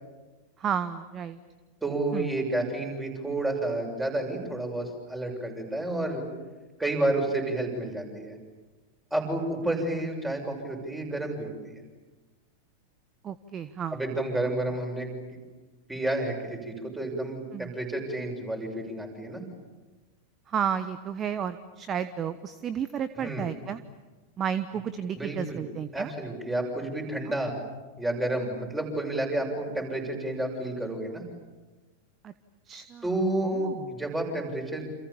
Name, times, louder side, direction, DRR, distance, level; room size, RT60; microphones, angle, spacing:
voice 1, 0.6-1.4 2.1-2.3 13.2-14.0 17.5-17.7 20.5-23.8 24.4-26.1 32.2-32.3 32.7-33.0 33.4-33.9, right 8 dB, 25° right, 14 dB, 1.0 m, -32 dB
voice 2, 1.8-6.2 6.8-8.4 9.1-11.8 13.9-15.1 15.9-19.5 23.2-23.5 25.2-25.6 25.9-27.6 28.0-31.2 33.0-34.8, right 1 dB, 10° right, 2 dB, 7.1 m, -30 dB
29.5 x 28.0 x 7.2 m, 1.2 s
figure-of-eight pair, 90°, 0 cm